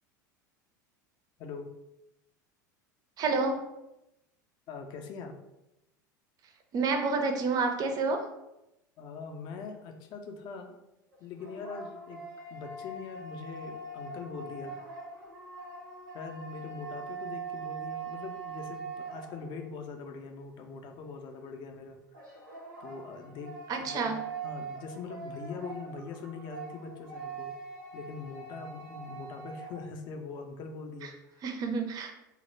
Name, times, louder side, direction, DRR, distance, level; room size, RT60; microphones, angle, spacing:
voice 1, 1.4-1.7 4.7-5.3 9.0-10.7 11.2-12.2 12.5-14.8 16.1-22.4 22.8-23.5 23.8-27.5 27.9-31.4, left 4 dB, 45° left, 5 dB, 0.4 m, -42 dB
voice 2, 3.2-3.6 6.7-8.3 23.7-24.1 31.0-31.1 31.4-32.1, right 4 dB, 35° right, 5 dB, 0.4 m, -29 dB
sound 1, 11.1-19.8 22.1-29.9, right 4 dB, 85° right, 0.7 m, -42 dB
2.1 x 2.0 x 3.1 m, 0.90 s
hypercardioid pair, 80°, 10 cm